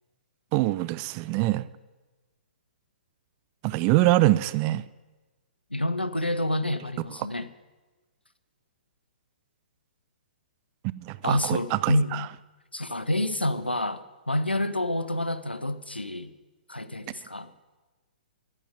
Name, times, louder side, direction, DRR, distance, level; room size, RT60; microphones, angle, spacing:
voice 1, 0.5-1.7 3.6-4.8 10.8-12.3, right 17 dB, 25° right, 0.3 m, -24 dB
voice 2, 5.7-7.5 11.2-12.3 12.7-16.3 16.7-17.5, left 1 dB, 85° left, 0.8 m, -28 dB
10.5 x 8.8 x 9.0 m
figure-of-eight pair, 120°, 5 cm